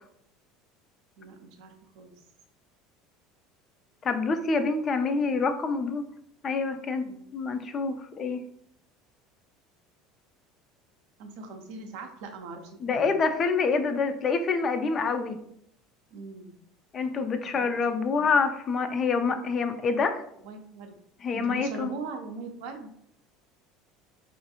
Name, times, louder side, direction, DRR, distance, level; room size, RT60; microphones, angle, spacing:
voice 1, 1.2-2.1 7.0-7.2 11.2-13.1 16.1-16.6 17.4-18.3 19.6-19.7 20.4-21.0 21.3-22.9, right 3 dB, 70° right, 5 dB, 0.4 m, -41 dB
voice 2, 4.0-6.0 6.4-7.1 7.3-8.4 12.8-15.4 16.9-20.2 21.2-21.9, left 4 dB, 40° left, 8 dB, 0.3 m, -26 dB
2.5 x 2.3 x 2.8 m, 0.71 s
hypercardioid pair, 80°, 0 cm